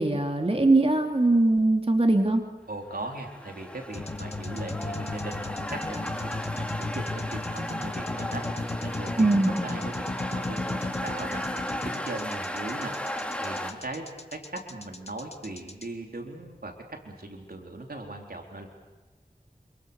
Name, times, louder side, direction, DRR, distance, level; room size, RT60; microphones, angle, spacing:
voice 1, 0.0-2.4 9.2-9.5, right 2 dB, 40° right, 3 dB, 2.8 m, -21 dB
voice 2, 2.7-5.6 5.9-11.4 11.8-12.9 13.4-14.1 14.3-18.7, right 2 dB, 85° right, 2 dB, 4.0 m, -39 dB
sound 1, 3.0-13.7, equal, 5° left, 3.1 m, -35 dB
sound 2, 3.9-15.8, left 2 dB, 45° left, 2.3 m, -35 dB
27.5 x 27.5 x 7.1 m, 1.2 s
wide cardioid pair, 50°, 15 cm